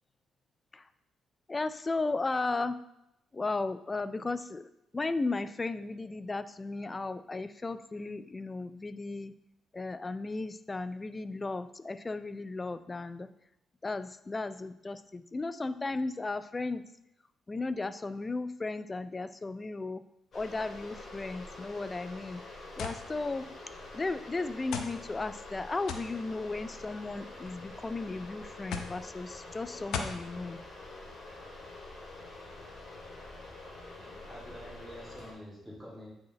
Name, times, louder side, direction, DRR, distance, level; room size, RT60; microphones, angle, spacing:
voice 1, 1.5-2.8 3.3-9.3 9.7-13.3 13.8-16.8 17.5-20.0 20.3-22.4 22.8-23.5 23.9-30.6, left 3 dB, 25° left, 13 dB, 0.4 m, -35 dB
sound 1, 20.3-35.3, left 2 dB, 50° left, 2.4 m, -47 dB
sound 2, 22.8-23.0 23.9-24.0 24.7-25.0 25.9-26.1 27.1-27.5 28.7-29.0 29.9-30.2, left 6 dB, 80° left, 0.7 m, -36 dB
voice 2, 34.0-36.1, equal, ahead, -8 dB, 2.8 m, -47 dB
8.3 x 4.7 x 3.1 m, 0.82 s
cardioid pair, 90°, 0 cm